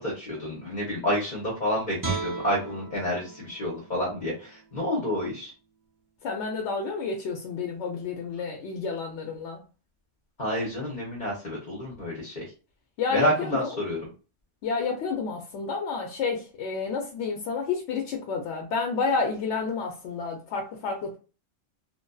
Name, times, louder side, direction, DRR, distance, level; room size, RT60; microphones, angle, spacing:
voice 1, 0.0-5.5 10.4-12.4 13.1-14.0, equal, 45° left, -2 dB, 0.8 m, -29 dB
Guitar, 2.0-5.2 5.6-5.7, right 4 dB, 25° right, 0.4 m, -36 dB
voice 2, 6.2-9.6 13.0-13.8 14.6-21.2, left 4 dB, 70° left, 1 dB, 0.8 m, -30 dB
2.5 x 2.2 x 2.2 m, 0.34 s
omnidirectional pair, 1.3 m